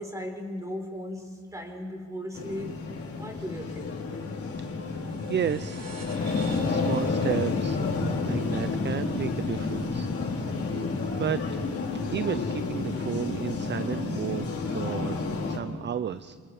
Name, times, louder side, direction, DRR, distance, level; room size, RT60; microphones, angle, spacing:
voice 1, 0.0-2.8 3.2-3.9, equal, 10° right, 3 dB, 4.8 m, -37 dB
sound 1, 2.3-15.6, left 4 dB, 50° left, 4.4 m, -30 dB
voice 2, 4.9-5.8 6.6-10.1 10.4-10.9 11.1-11.7 12.1-15.2 15.5-16.4, right 8 dB, 35° right, 14 dB, 0.6 m, -33 dB
sound 2, 5.0-10.0, right 5 dB, 60° right, 5.7 m, -50 dB
28.0 x 27.5 x 4.9 m, 2.1 s
cardioid pair, 90°, 30 cm